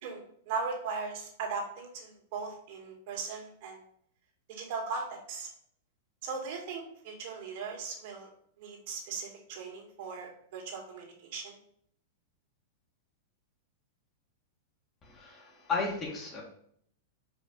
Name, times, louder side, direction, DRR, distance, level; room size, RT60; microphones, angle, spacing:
voice 1, 0.0-3.8 4.5-5.5 6.2-8.3 8.6-11.6, right 4 dB, 50° right, 0 dB, 2.1 m, -38 dB
voice 2, 15.0-16.4, left 4 dB, 30° left, -2 dB, 1.9 m, -34 dB
5.1 x 5.1 x 5.4 m, 0.66 s
figure-of-eight pair, 95°, 0 cm